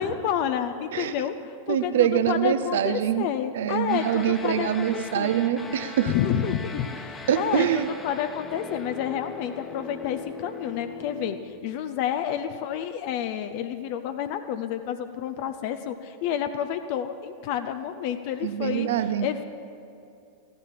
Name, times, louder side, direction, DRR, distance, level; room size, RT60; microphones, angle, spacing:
voice 1, 0.0-5.3 6.0-18.9 19.2-19.4, left 9 dB, 45° left, 8 dB, 0.6 m, -29 dB
voice 2, 1.7-3.3 3.5-6.1 7.3-7.9 18.4-19.3, right 10 dB, 60° right, 13 dB, 0.7 m, -24 dB
sound 1, 3.9-11.4, left 3 dB, 15° left, 1.2 m, -40 dB
15.0 x 10.5 x 7.4 m, 2.6 s
figure-of-eight pair, 90°, 0 cm